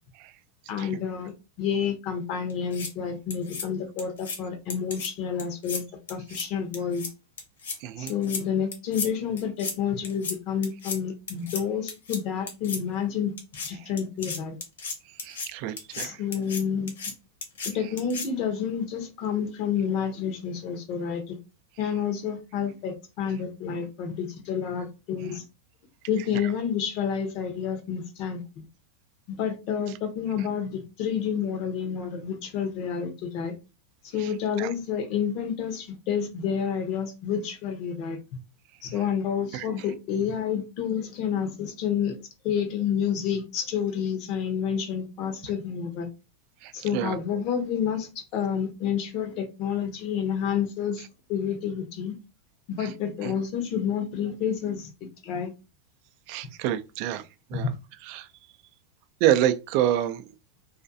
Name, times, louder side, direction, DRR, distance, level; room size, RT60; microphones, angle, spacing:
voice 1, 0.7-1.3 1.6-5.8 6.1-7.1 8.0-14.6 15.9-16.9 17.6-21.4 21.8-25.4 26.1-28.7 29.3-33.6 34.0-38.2 38.8-46.1 46.7-52.2 52.7-55.5 57.5-57.7, left 7 dB, 50° left, 0.7 m, -29 dB
sound 1, 2.5-2.9 3.3-3.6 4.0-4.4 4.7-5.1 5.4-5.8 6.1-6.4 6.7-7.1 7.4-7.8 8.1-8.4 8.7-9.1 9.4-9.7 10.0-10.3 10.6-11.0 11.3-11.6 11.9-12.2 12.5-12.8 13.4-13.7 14.0-15.5 15.8-16.1 16.3-16.6 16.9-17.1 17.4-17.7 18.0-18.3, left 5 dB, 90° left, 0.7 m, -34 dB
voice 2, 7.8-8.1 15.2-16.2 34.6-34.7 39.5-39.7 46.6-47.2 53.2-53.3 56.3-57.2 57.5-57.7 58.1-58.3 59.2-60.3, right 12 dB, 55° right, 0.3 m, -27 dB
2.4 x 2.3 x 2.5 m
hypercardioid pair, 125°, 0 cm